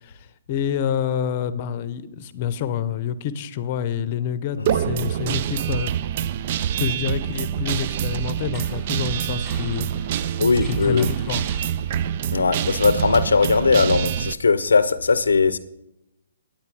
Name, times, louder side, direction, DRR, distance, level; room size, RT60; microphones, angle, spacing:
voice 1, 0.0-5.9 6.8-11.5, left 8 dB, 40° left, 15 dB, 0.7 m, -28 dB
Guitar, 4.7-14.3, right 10 dB, 45° right, 0.3 m, -26 dB
sound 1, 8.5-12.3, equal, 5° right, 2.4 m, -46 dB
voice 2, 10.4-11.1 12.3-15.6, left 4 dB, 85° left, 15 dB, 0.6 m, -19 dB
9.6 x 8.9 x 4.7 m, 0.85 s
hypercardioid pair, 140°, 0 cm